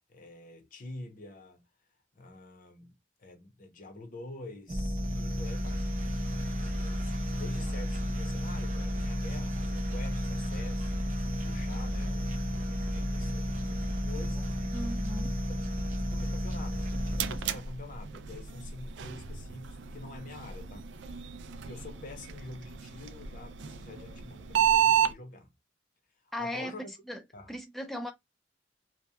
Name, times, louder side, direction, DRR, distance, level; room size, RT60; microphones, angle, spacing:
voice 1, 0.1-1.6 2.1-2.9 3.2-5.8 6.5-14.5 15.5-20.9 21.7-25.5 26.4-26.8 27.3-27.5, left 2 dB, 45° left, 0.7 m, -47 dB
sound 1, 4.7-17.7, equal, 40° right, 0.7 m, -32 dB
voice 2, 14.7-15.4 26.3-26.7 27.1-27.2 27.5-28.1, left 1 dB, ahead, 0.4 m, -37 dB
sound 2, 16.6-25.1, right 9 dB, 75° right, 0.4 m, -32 dB
2.8 x 2.2 x 2.2 m
head